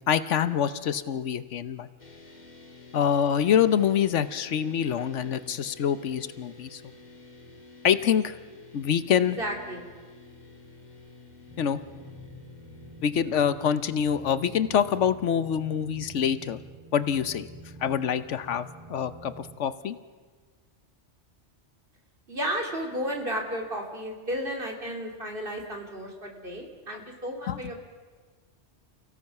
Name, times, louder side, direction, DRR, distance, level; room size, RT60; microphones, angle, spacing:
voice 1, 0.1-1.9 2.9-6.8 7.8-8.3 8.7-9.4 11.6-11.8 13.0-16.6 16.9-17.5 17.8-20.0 27.4-27.6, left 8 dB, 85° left, 13 dB, 1.2 m, -25 dB
sound 1, 2.0-16.4, left 3 dB, 40° left, 2.1 m, -50 dB
voice 2, 9.4-9.8 22.3-27.8, equal, 50° right, 1 dB, 3.2 m, -33 dB
image drone, 11.5-19.6, equal, 25° right, 4.1 m, -47 dB
29.5 x 16.5 x 5.9 m, 1.4 s
omnidirectional pair, 1.2 m